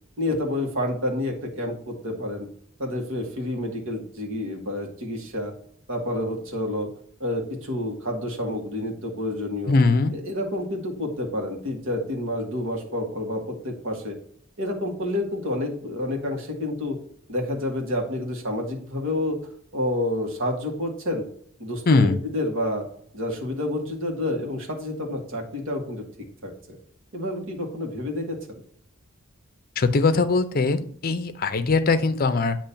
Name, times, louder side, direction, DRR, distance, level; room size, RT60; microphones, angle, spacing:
voice 1, 0.2-2.5 2.8-5.5 5.9-6.9 7.2-9.7 10.1-14.1 14.6-17.0 17.3-19.4 19.7-21.3 21.6-22.8 23.1-26.0 26.4-26.8 27.1-28.6, left 1 dB, 65° right, 1 dB, 1.6 m, -29 dB
voice 2, 9.7-10.1 21.9-22.2 29.8-32.6, left 3 dB, 45° left, 10 dB, 0.6 m, -21 dB
8.5 x 3.0 x 5.7 m, 0.63 s
head